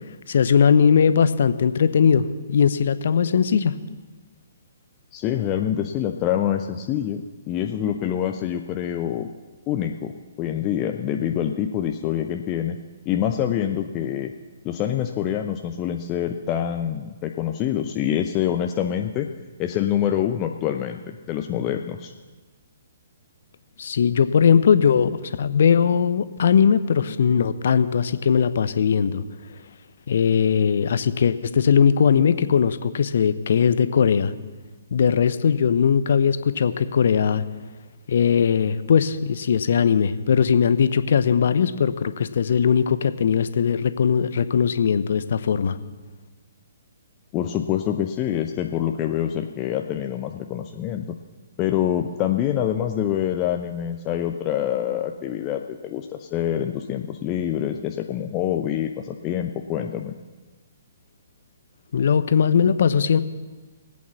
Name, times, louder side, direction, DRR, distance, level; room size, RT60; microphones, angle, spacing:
voice 1, 0.3-3.8 23.8-29.2 30.1-34.3 34.9-37.4 38.1-45.8 61.9-63.2, left 7 dB, 55° left, 13 dB, 0.8 m, -19 dB
voice 2, 5.1-7.2 7.5-9.3 9.7-10.1 10.4-12.8 13.1-14.3 14.6-19.3 19.6-22.1 47.3-51.2 51.6-60.1, left 10 dB, 25° left, 4 dB, 0.7 m, -26 dB
18.5 x 8.6 x 7.2 m, 1.3 s
figure-of-eight pair, 125°, 0 cm